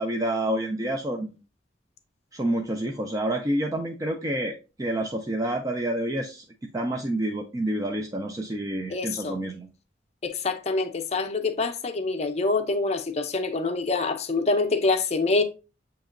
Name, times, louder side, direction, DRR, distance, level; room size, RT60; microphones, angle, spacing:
voice 1, 0.0-1.3 2.3-6.4 6.7-9.7, right 1 dB, 20° right, 0.4 m, -28 dB
voice 2, 8.9-9.4 10.2-15.4, left 3 dB, 35° left, 0.5 m, -26 dB
7.2 x 2.9 x 2.4 m
head